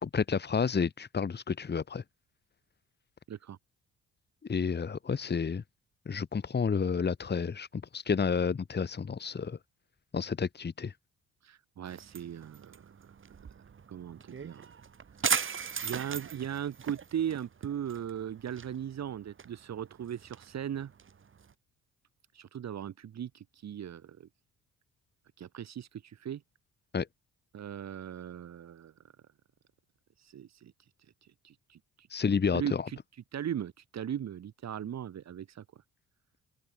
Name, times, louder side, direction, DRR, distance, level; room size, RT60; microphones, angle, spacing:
voice 1, 0.0-2.0 4.5-5.6 6.1-9.6 10.1-10.9 26.9-27.1 32.1-32.9, left 6 dB, 35° left, 2.3 m, -30 dB
voice 2, 11.4-12.8 13.9-14.7 15.2-15.4 15.8-20.9 22.3-24.3 25.4-26.4 27.5-28.9 30.2-35.6, right 9 dB, 60° right, 5.7 m, -38 dB
sound 1, 11.9-21.5, right 6 dB, 40° right, 3.3 m, -39 dB
open air
cardioid pair, 90°, 30 cm